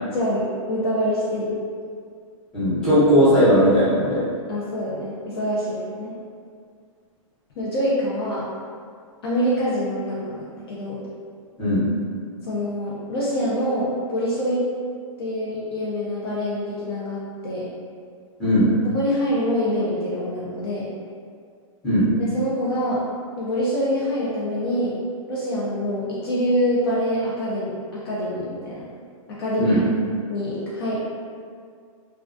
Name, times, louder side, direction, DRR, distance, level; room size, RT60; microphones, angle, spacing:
voice 1, 0.1-1.6 4.5-6.1 7.6-8.5 9.2-11.0 12.4-14.6 15.2-17.7 18.9-20.9 22.2-23.0 23.4-24.9 25.3-28.8 29.3-29.8 30.3-31.0, equal, 45° left, -7 dB, 0.5 m, -25 dB
voice 2, 2.5-4.2 11.6-11.8 18.4-18.7 21.8-22.1 29.6-29.8, equal, 5° left, -15 dB, 0.7 m, -17 dB
2.2 x 2.2 x 2.4 m, 2.1 s
hypercardioid pair, 160°, 18 cm